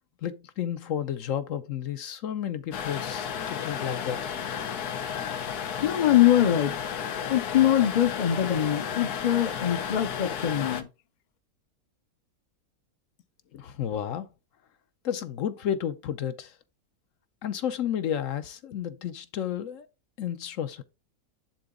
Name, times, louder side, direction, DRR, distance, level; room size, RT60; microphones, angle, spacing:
voice 1, 0.2-4.4 13.5-14.3 15.0-16.6 17.4-19.9 20.2-20.8, left 9 dB, 65° left, 1.0 m, -32 dB
sound 1, 2.7-10.8, left 8 dB, 90° left, 1.5 m, -33 dB
voice 2, 5.8-6.7 7.3-10.9, left 11 dB, 45° left, 0.5 m, -23 dB
10.5 x 3.9 x 3.7 m
omnidirectional pair, 1.6 m